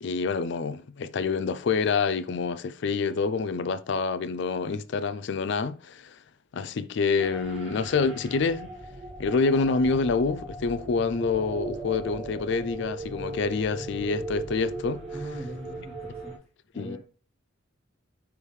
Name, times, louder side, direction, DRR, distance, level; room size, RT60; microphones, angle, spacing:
voice 1, 0.0-6.2 6.5-8.7 9.2-15.0 16.8-17.0, left 4 dB, 65° left, 0.4 m, -27 dB
sound 1, 7.2-16.4, right 2 dB, 35° right, 2.1 m, -38 dB
voice 2, 15.1-16.4 16.7-17.0, right 1 dB, 10° left, 1.4 m, -40 dB
9.8 x 3.4 x 3.2 m
head